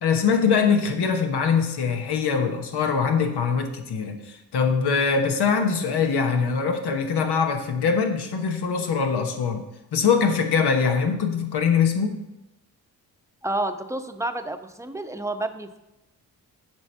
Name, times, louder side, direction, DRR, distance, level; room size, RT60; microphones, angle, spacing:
voice 1, 0.0-9.6 9.9-12.2, left 6 dB, 75° left, 5 dB, 1.1 m, -23 dB
voice 2, 13.4-15.8, right 2 dB, 5° right, 8 dB, 0.8 m, -30 dB
7.4 x 4.6 x 6.4 m, 0.93 s
supercardioid pair, 45°, 40 cm